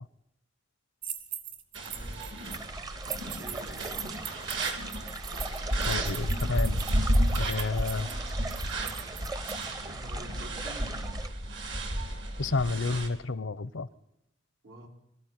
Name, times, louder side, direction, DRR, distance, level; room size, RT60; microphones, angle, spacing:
sound 1, 1.0-2.7 3.0-9.6, right 9 dB, 45° right, 2.1 m, -41 dB
sound 2, 1.7-13.1, right 1 dB, 70° right, 3.3 m, -32 dB
voice 1, 1.8-2.8 3.0-4.3 9.7-11.2 14.6-14.9, right 1 dB, 85° right, 1 dB, 4.3 m, -48 dB
sound 3, 2.4-11.3, right 3 dB, 20° right, 0.8 m, -41 dB
voice 2, 5.9-6.8 7.4-8.1 12.4-13.9, left 3 dB, 75° left, 18 dB, 0.8 m, -30 dB
23.5 x 14.0 x 9.5 m, 0.81 s
head